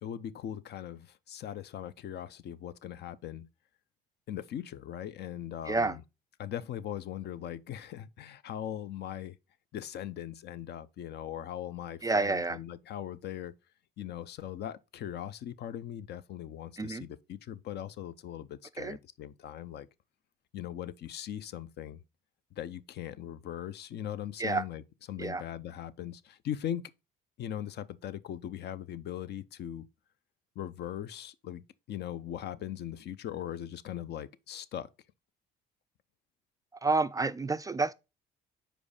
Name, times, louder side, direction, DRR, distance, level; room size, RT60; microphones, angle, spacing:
voice 1, 0.0-3.5 4.3-6.0 6.4-9.4 9.7-13.5 14.0-19.9 20.5-22.0 22.5-24.8 25.1-26.8 27.4-29.9 30.6-34.9, left 10 dB, 55° left, 0.5 m, -40 dB
voice 2, 5.7-6.0 12.0-12.6 16.8-17.1 18.8-19.0 24.4-24.6 25.2-25.4 36.8-37.9, right 3 dB, 20° right, 0.3 m, -29 dB
5.1 x 4.4 x 4.8 m
supercardioid pair, 65°, 20 cm